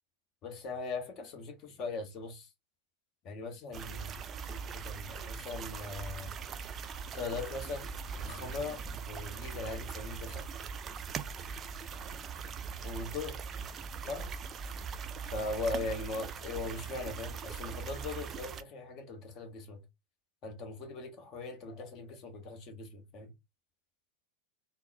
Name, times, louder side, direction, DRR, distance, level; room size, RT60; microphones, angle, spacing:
voice 1, 0.4-2.5 3.2-4.2 4.5-6.4 7.1-7.9 8.2-10.5 12.8-13.4 14.0-14.4 15.3-19.8 20.4-23.3, left 3 dB, 35° left, 0.9 m, -40 dB
sound 1, 3.7-18.6, right 6 dB, 25° right, 0.3 m, -41 dB
3.8 x 2.0 x 2.5 m
figure-of-eight pair, 90°, 0 cm